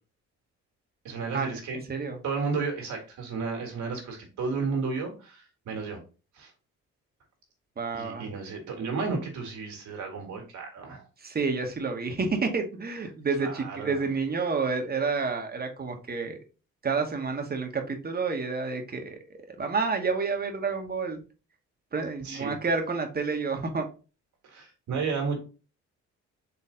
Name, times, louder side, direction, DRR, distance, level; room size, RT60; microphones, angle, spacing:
voice 1, 1.0-1.8 2.2-6.0 6.3-6.5 7.9-11.0 13.4-14.0 22.2-22.6 24.4-25.4, right 4 dB, 75° right, 2 dB, 1.9 m, -33 dB
voice 2, 1.7-2.2 7.8-8.3 11.2-16.4 16.8-21.2 21.9-23.9, right 4 dB, 30° right, 4 dB, 1.2 m, -29 dB
4.2 x 3.3 x 3.7 m, 0.34 s
cardioid pair, 90°, 30 cm